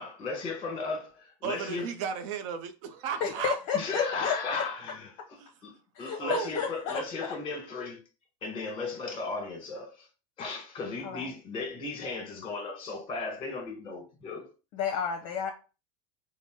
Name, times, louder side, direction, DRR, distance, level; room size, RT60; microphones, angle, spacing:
voice 1, 0.0-1.9 3.7-5.7 6.0-8.0 8.4-10.1 10.4-14.5, left 4 dB, 30° left, 1.3 m, -36 dB
voice 2, 1.4-3.6 5.4-5.5 6.0-6.5, right 7 dB, 70° right, 0.6 m, -34 dB
voice 3, 3.2-4.6 5.9-7.3 11.0-11.3 14.7-15.5, left 7 dB, 55° left, 0.6 m, -32 dB
3.6 x 2.1 x 3.6 m
supercardioid pair, 110°, 16 cm